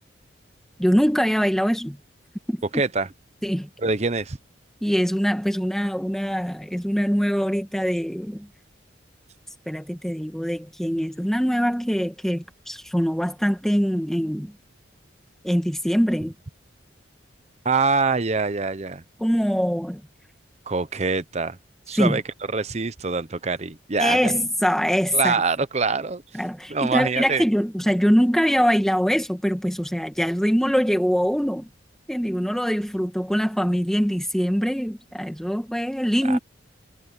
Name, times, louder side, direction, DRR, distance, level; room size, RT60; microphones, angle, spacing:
voice 1, 0.8-2.0 2.5-2.6 3.4-3.7 4.8-8.5 9.7-14.5 15.4-16.3 19.2-20.0 21.9-22.2 24.0-25.4 26.3-31.7 32.1-36.4, equal, ahead, 2.0 m, -23 dB
voice 2, 2.7-3.1 3.8-4.4 17.6-19.0 20.7-21.6 21.9-22.2 22.5-24.3 25.1-26.2 26.7-27.4 36.3-36.4, right 4 dB, 35° right, 0.8 m, -24 dB
head